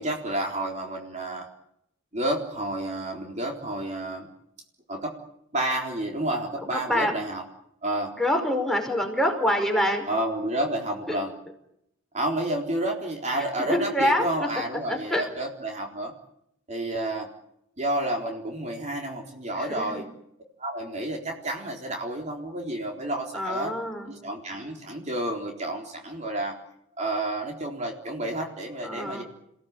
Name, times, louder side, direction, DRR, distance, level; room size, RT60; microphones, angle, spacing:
voice 1, 0.0-1.5 2.1-4.3 4.9-5.1 5.5-7.4 7.8-8.1 10.1-11.3 12.1-16.1 16.7-17.3 17.8-20.0 20.6-23.7 24.1-26.6 27.0-29.2, right 1 dB, 35° right, 1 dB, 4.0 m, -30 dB
voice 2, 6.7-7.1 8.2-10.1 11.1-11.2 13.6-14.3 14.9-15.2 19.5-20.0 23.3-24.1 28.8-29.2, left 1 dB, ahead, 2 dB, 5.2 m, -26 dB
30.0 x 17.5 x 9.0 m, 0.77 s
head